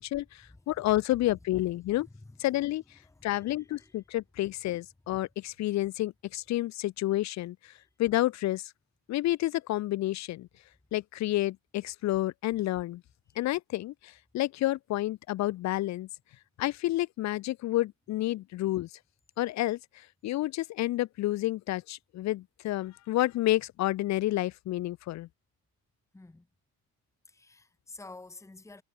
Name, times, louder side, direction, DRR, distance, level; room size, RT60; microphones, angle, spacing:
voice 1, 0.0-2.1 2.4-2.8 3.2-7.6 8.0-8.7 9.1-10.5 10.9-13.0 13.4-16.1 16.6-18.9 19.4-19.8 20.2-25.3, left 16 dB, 40° left, 0.5 m, -30 dB
voice 2, 2.1-2.7 3.0-4.0 7.8-7.9 13.3-13.5 26.1-26.5 27.3-28.8, left 3 dB, 5° left, 1.8 m, -51 dB
cardioid pair, 125°, 43 cm